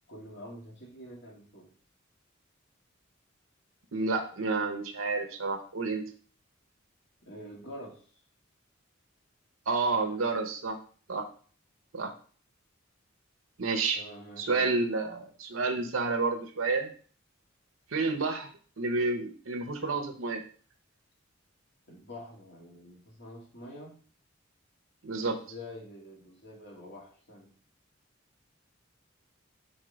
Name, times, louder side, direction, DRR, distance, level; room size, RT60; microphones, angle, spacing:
voice 1, 0.1-1.7 7.2-8.1 13.9-14.8 21.9-23.9 25.2-27.5, left 1 dB, 60° left, -2 dB, 2.0 m, -46 dB
voice 2, 3.9-6.1 9.7-10.8 11.1-11.3 11.9-12.1 13.6-14.0 14.4-16.9 17.9-18.5 18.8-20.4 25.0-25.4, right 3 dB, 90° right, 4 dB, 0.8 m, -30 dB
4.4 x 4.1 x 5.1 m, 0.42 s
head